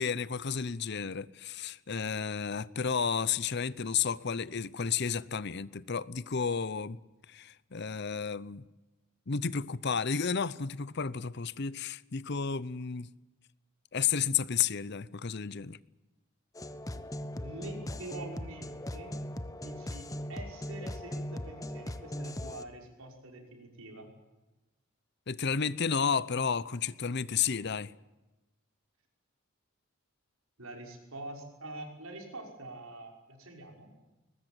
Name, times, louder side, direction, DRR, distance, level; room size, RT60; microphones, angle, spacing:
voice 1, 0.0-7.0 7.3-8.6 9.3-13.1 13.9-15.8 25.3-27.9, left 6 dB, 50° left, 0.7 m, -32 dB
sound 1, 16.5-22.6, left 1 dB, 15° left, 1.0 m, -39 dB
voice 2, 17.4-19.2 19.6-24.1 30.6-33.9, right 2 dB, 80° right, 6.0 m, -45 dB
22.0 x 20.0 x 9.1 m
head